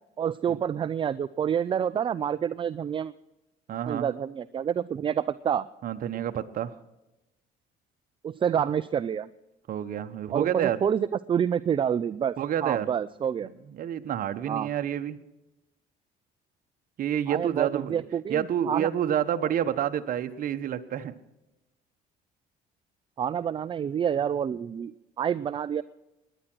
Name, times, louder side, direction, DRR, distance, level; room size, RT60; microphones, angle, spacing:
voice 1, 0.2-3.1 3.9-5.7 8.2-9.3 10.3-12.4 12.6-13.5 14.5-14.7 17.3-18.9 23.2-24.9 25.2-25.8, right 8 dB, 30° right, 16 dB, 0.4 m, -28 dB
voice 2, 3.7-4.1 5.8-6.7 9.7-10.8 12.4-12.9 13.6-15.2 17.0-18.0 18.3-21.1, right 10 dB, 55° right, 9 dB, 1.1 m, -28 dB
19.0 x 10.0 x 6.2 m, 0.95 s
cardioid pair, 110°, 17 cm